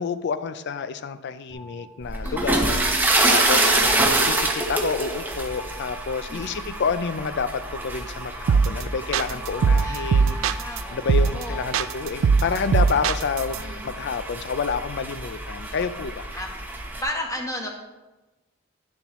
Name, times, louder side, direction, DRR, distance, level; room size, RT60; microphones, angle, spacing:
voice 1, 0.0-2.8 3.3-4.4 4.7-10.4 10.9-13.6 13.8-16.3, left 5 dB, 60° left, 13 dB, 0.4 m, -29 dB
sound 1, 1.5-2.7 5.5-7.1 9.5-13.1 13.5-14.4, right 2 dB, 40° left, 1.3 m, -43 dB
sound 2, 2.0-17.0, right 2 dB, 10° right, 0.8 m, -27 dB
voice 2, 2.2-2.8 3.6-4.0 6.3-6.8 9.8-11.7 13.5-13.9 16.3-16.5 17.0-17.7, left 1 dB, 15° left, 1 dB, 1.1 m, -34 dB
sound 3, 8.5-8.8 9.1-10.8 11.1-11.4 11.7-13.6, right 5 dB, 70° right, 0.3 m, -20 dB
9.6 x 6.9 x 3.0 m, 1.1 s
head